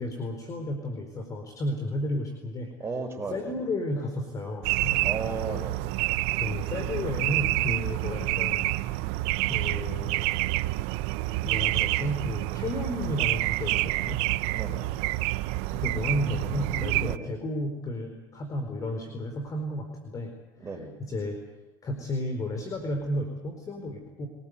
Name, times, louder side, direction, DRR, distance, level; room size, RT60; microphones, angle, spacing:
voice 1, 0.0-2.7 3.3-5.1 6.4-8.8 9.5-10.3 11.4-14.2 15.7-20.3 20.6-20.7 21.0-21.4 21.8-24.3, left 1 dB, 30° left, 5 dB, 4.5 m, -32 dB
voice 2, 2.8-3.5 5.0-5.8 14.5-14.9 17.0-17.3 20.6-20.9, right 4 dB, 25° right, 3 dB, 5.8 m, -35 dB
sound 1, 4.6-17.2, right 19 dB, 65° right, 0.8 m, -28 dB
25.0 x 19.0 x 8.2 m, 1.1 s
supercardioid pair, 100°, 11 cm